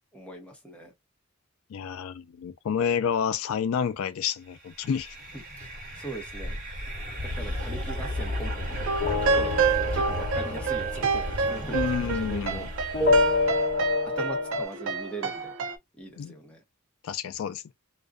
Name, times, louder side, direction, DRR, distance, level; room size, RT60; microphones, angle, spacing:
voice 1, 0.1-0.9 5.3-6.6 7.3-8.6 8.9-12.7 14.1-15.5 16.0-16.6, right 1 dB, 5° left, 0.8 m, -41 dB
voice 2, 1.7-5.2 11.5-12.7 16.2-16.3 17.0-17.7, left 7 dB, 75° left, 0.3 m, -29 dB
sound 1, 4.6-13.8, left 1 dB, 40° right, 1.2 m, -34 dB
sound 2, 8.8-15.8, right 5 dB, 65° right, 0.4 m, -29 dB
sound 3, 9.0-12.6 12.9-14.6, left 3 dB, 35° left, 0.8 m, -28 dB
2.4 x 2.2 x 2.3 m
head